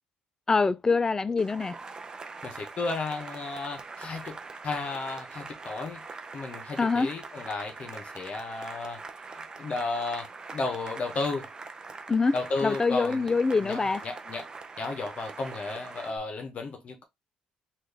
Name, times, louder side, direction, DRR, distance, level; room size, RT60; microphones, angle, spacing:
voice 1, 0.5-1.8 6.8-7.1 12.1-12.3 12.6-14.0, left 4 dB, 20° left, 0.3 m, -24 dB
Cheering / Applause, 1.4-16.2, right 4 dB, 25° right, 0.5 m, -43 dB
voice 2, 2.4-4.4 4.6-6.0 6.3-9.0 9.6-11.5 12.3-13.3 13.6-14.5 14.8-17.0, left 3 dB, 45° left, 0.7 m, -33 dB
3.7 x 2.4 x 3.2 m
cardioid pair, 90°, 3 cm